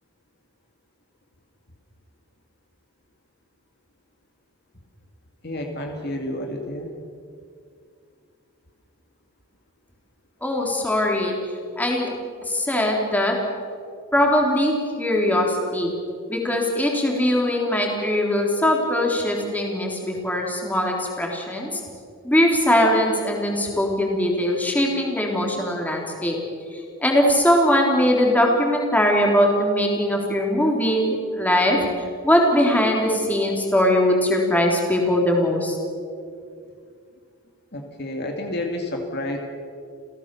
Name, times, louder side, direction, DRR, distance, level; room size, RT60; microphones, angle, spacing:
voice 1, 5.4-7.0 37.7-39.4, left 1 dB, 50° left, 2 dB, 2.2 m, -30 dB
voice 2, 10.4-12.1 12.5-13.4 14.1-15.9 16.3-21.8 22.2-26.4 26.7-35.8, left 1 dB, 5° left, 0 dB, 3.6 m, -21 dB
29.5 x 16.0 x 7.0 m, 2.3 s
head